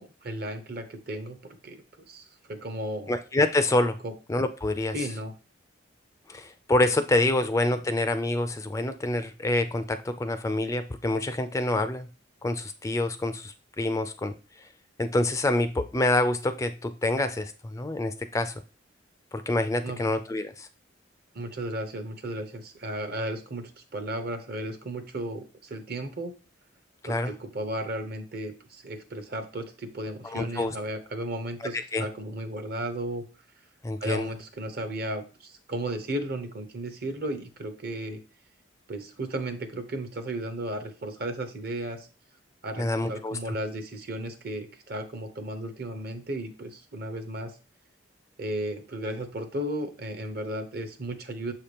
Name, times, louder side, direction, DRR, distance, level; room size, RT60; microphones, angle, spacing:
voice 1, 0.0-3.1 4.0-4.1 4.9-5.3 19.8-20.0 21.3-26.4 27.0-33.2 34.0-38.2 38.9-42.1 42.6-47.6 48.4-51.5, right 1 dB, 55° right, 7 dB, 0.9 m, -34 dB
voice 2, 3.1-4.0 4.3-4.9 6.3-12.1 12.4-14.3 15.0-18.5 19.3-20.7 27.0-27.3 30.2-30.7 31.9-32.1 33.8-34.3 42.8-43.4, left 2 dB, 15° left, 9 dB, 0.3 m, -26 dB
6.8 x 2.9 x 5.0 m, 0.34 s
head